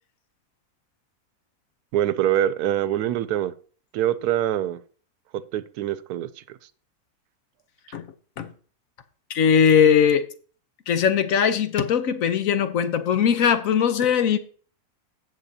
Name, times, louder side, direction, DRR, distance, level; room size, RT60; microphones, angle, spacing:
voice 1, 1.9-3.5 3.9-4.8 5.3-6.6, right 12 dB, 85° right, 1.1 m, -24 dB
voice 2, 9.3-10.2 10.9-14.4, left 7 dB, 65° left, 1.1 m, -20 dB
16.5 x 6.0 x 2.7 m
omnidirectional pair, 1.6 m